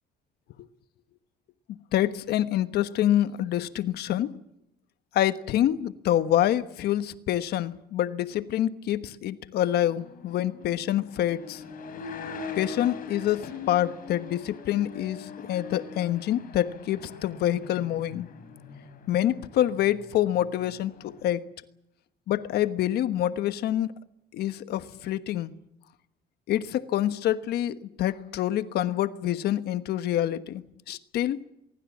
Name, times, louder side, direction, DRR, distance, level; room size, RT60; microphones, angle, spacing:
voice 1, 1.7-4.4 5.1-11.6 12.6-18.3 19.1-21.5 22.3-23.9 24.3-25.5 26.5-31.4, left 12 dB, 70° left, 1.3 m, -26 dB
sound 1, 9.6-21.3, left 5 dB, 55° left, 7.3 m, -42 dB
23.5 x 23.5 x 7.3 m
cardioid pair, 110°, 17 cm